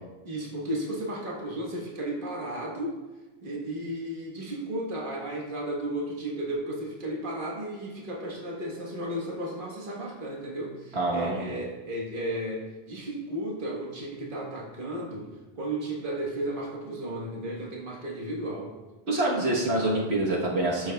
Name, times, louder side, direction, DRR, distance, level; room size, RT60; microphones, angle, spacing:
voice 1, 0.2-3.0 3.4-15.3 15.6-18.7, right 1 dB, 55° right, -2 dB, 1.5 m, -34 dB
voice 2, 10.9-11.5 19.1-20.9, right 1 dB, 75° right, -4 dB, 1.5 m, -26 dB
12.5 x 6.3 x 2.3 m, 1.1 s
omnidirectional pair, 1.1 m